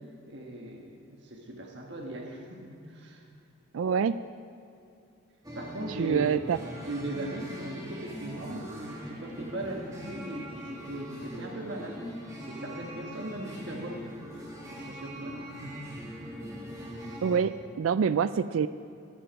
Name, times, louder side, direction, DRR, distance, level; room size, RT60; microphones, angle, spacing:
voice 1, 0.3-3.2 5.5-6.2 6.9-12.0 12.5-14.1 14.7-15.9, right 1 dB, 55° right, 0 dB, 1.5 m, -39 dB
voice 2, 3.7-4.2 5.9-6.6 17.2-18.7, right 7 dB, 90° right, 14 dB, 0.4 m, -26 dB
sound 1, 5.4-17.4, equal, 15° right, 2.2 m, -41 dB
23.0 x 9.0 x 5.3 m, 2.6 s
head